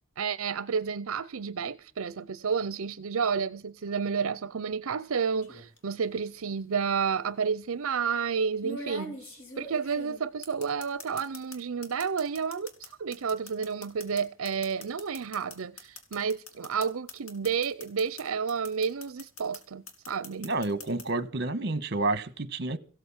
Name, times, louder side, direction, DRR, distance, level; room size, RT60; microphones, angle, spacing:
voice 1, 0.2-20.5, right 6 dB, 80° right, 0.6 m, -31 dB
sound 1, 5.4-5.8 7.0-7.1 8.6-11.6 11.8-18.2 18.5-19.6 19.9-21.0, left 1 dB, 75° left, 4.1 m, -42 dB
voice 2, 20.4-22.8, right 2 dB, 50° right, 1.4 m, -29 dB
16.0 x 9.0 x 7.3 m
head